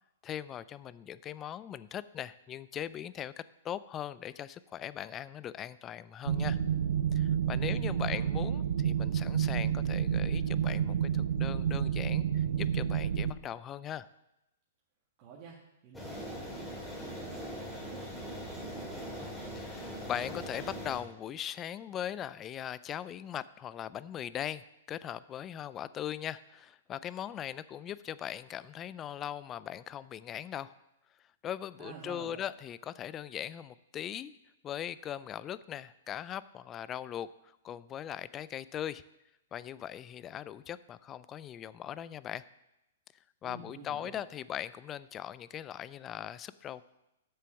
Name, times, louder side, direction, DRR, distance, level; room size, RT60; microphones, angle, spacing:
voice 1, 0.2-6.6 7.1-14.1 19.6-30.7 31.4-34.3 34.6-39.0 39.5-42.4 43.4-46.9, left 10 dB, 25° left, 17 dB, 0.4 m, -40 dB
sound 1, 6.2-13.3, right 8 dB, 70° right, 0.7 m, -30 dB
voice 2, 7.6-8.3 15.2-15.6 15.8-19.3 31.8-32.4 43.4-44.2, right 5 dB, 40° right, -3 dB, 1.6 m, -50 dB
sound 2, 15.9-21.0, equal, 5° left, 2.6 m, -41 dB
7.8 x 6.8 x 7.0 m, 0.90 s
hypercardioid pair, 120°, 0 cm